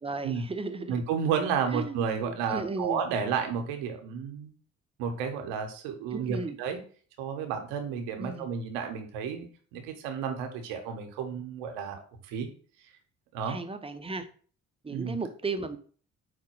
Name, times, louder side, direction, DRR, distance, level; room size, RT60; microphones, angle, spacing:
voice 1, 0.0-1.0 1.7-3.0 6.1-6.5 8.2-8.5 13.5-14.3 14.8-15.8, right 3 dB, 15° right, 9 dB, 0.6 m, -35 dB
voice 2, 0.9-4.5 5.0-6.8 7.2-9.5 9.7-12.0 12.3-12.5 13.3-13.6 14.9-15.1, right 6 dB, 85° right, 5 dB, 0.8 m, -31 dB
4.7 x 2.2 x 4.3 m, 0.43 s
hypercardioid pair, 50°, 34 cm